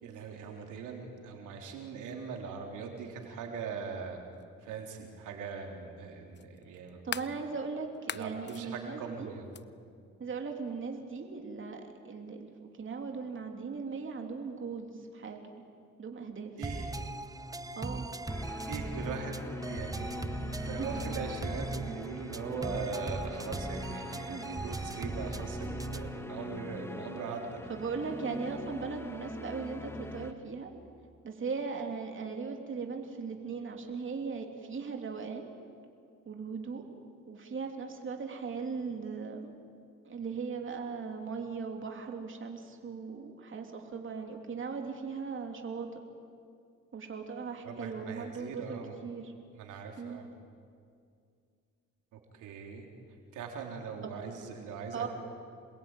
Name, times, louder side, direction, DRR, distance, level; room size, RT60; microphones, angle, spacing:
voice 1, 0.0-4.2 4.6-7.2 8.1-9.5 16.6-16.9 18.7-27.6 47.6-49.0 49.5-50.3 52.1-55.1, right 5 dB, 90° right, 2 dB, 3.9 m, -41 dB
sound 1, 4.4-4.5 6.3-7.4 7.9-8.6 9.5-9.6, left 7 dB, 35° left, 0.8 m, -39 dB
voice 2, 7.0-9.3 10.2-12.5 12.8-15.4 16.0-16.5 17.8-18.1 20.8-20.9 24.1-24.6 27.7-30.7 31.2-35.5 36.2-36.8 37.3-39.5 40.0-46.0 46.9-49.3 50.0-50.2 54.0-54.2 54.9-55.1, right 5 dB, 40° right, 3 dB, 3.1 m, -38 dB
sound 2, 16.6-26.2, right 2 dB, 10° right, 1.0 m, -39 dB
sound 3, 18.3-30.3, left 2 dB, 10° left, 1.8 m, -42 dB
27.5 x 21.5 x 9.2 m, 2.3 s
cardioid pair, 90°, 30 cm